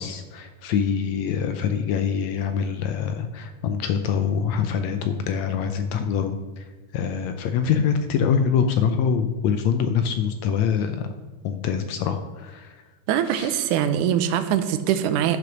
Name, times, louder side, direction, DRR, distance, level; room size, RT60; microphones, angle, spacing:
voice 1, 0.0-6.4 6.9-11.0 11.4-12.7 13.3-13.6, left 7 dB, 75° left, 8 dB, 1.7 m, -24 dB
voice 2, 13.1-15.4, right 9 dB, 85° right, 10 dB, 2.2 m, -22 dB
10.0 x 6.6 x 5.9 m, 1.2 s
omnidirectional pair, 3.6 m